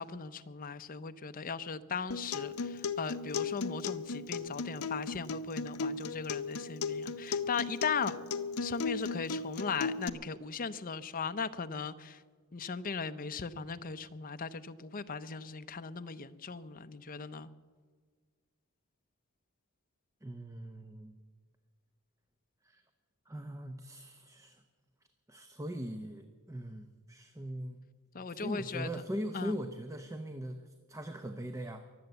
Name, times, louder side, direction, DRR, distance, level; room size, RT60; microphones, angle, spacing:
voice 1, 0.0-8.1 8.6-12.2 12.5-17.5 28.1-28.9 29.3-29.5, left 5 dB, 40° left, 11 dB, 0.6 m, -38 dB
Acoustic guitar, 2.1-10.1, left 4 dB, 75° left, 0.7 m, -36 dB
voice 2, 20.2-21.2 22.6-22.9 23.3-24.6 25.3-27.8 28.3-31.8, equal, 15° right, 7 dB, 0.7 m, -40 dB
23.0 x 7.8 x 8.1 m, 1.5 s
head